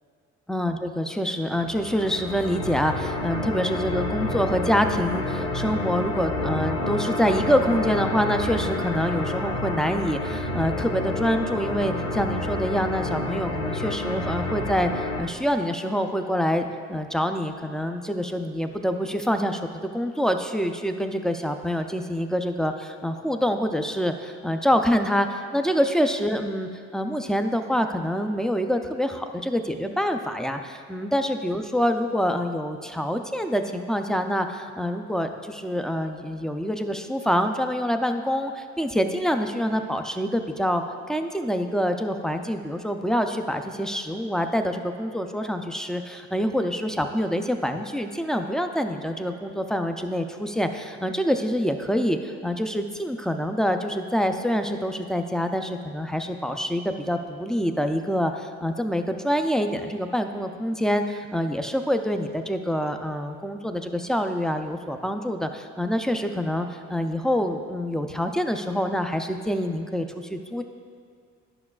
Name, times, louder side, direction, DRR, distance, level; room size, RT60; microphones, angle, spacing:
voice 1, 0.5-70.6, equal, ahead, 6 dB, 0.3 m, -26 dB
sound 1, 1.5-15.2, left 1 dB, 85° left, 1.1 m, -29 dB
11.0 x 5.9 x 2.4 m, 2.3 s
cardioid pair, 90°, 30 cm